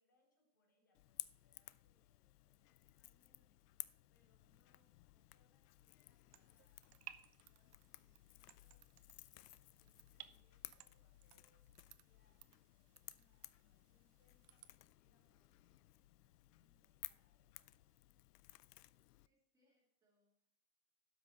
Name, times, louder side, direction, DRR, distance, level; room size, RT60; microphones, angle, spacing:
voice 1, 0.0-3.6 4.1-8.9 9.8-17.8, left 1 dB, 15° left, 1 dB, 0.4 m, -82 dB
Crackle / Crack, 0.9-19.3, left 16 dB, 80° left, 0.6 m, -57 dB
sound 1, 6.3-14.7, right 12 dB, 75° right, 0.8 m, -62 dB
voice 2, 19.2-20.5, left 1 dB, 5° right, -3 dB, 1.9 m, -81 dB
12.0 x 6.1 x 4.3 m, 0.79 s
supercardioid pair, 175°, 47 cm